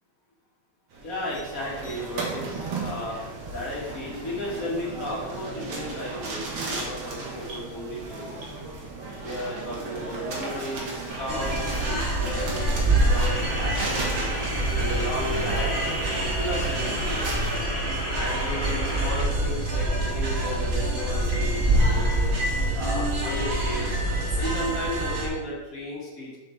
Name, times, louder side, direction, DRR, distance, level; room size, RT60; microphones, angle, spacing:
sound 1, 0.9-17.6, right 3 dB, 75° right, 2.1 m, -35 dB
voice 1, 1.0-3.2 3.5-8.3 9.2-14.2 14.7-17.2 18.1-22.3 22.7-24.1 24.4-26.4, equal, 40° left, -6 dB, 2.3 m, -34 dB
sound 2, 11.1-19.2, right 1 dB, 15° right, 2.2 m, -34 dB
sound 3, 11.3-25.3, right 1 dB, 35° right, 1.3 m, -26 dB
6.9 x 6.7 x 3.5 m, 1.2 s
omnidirectional pair, 2.4 m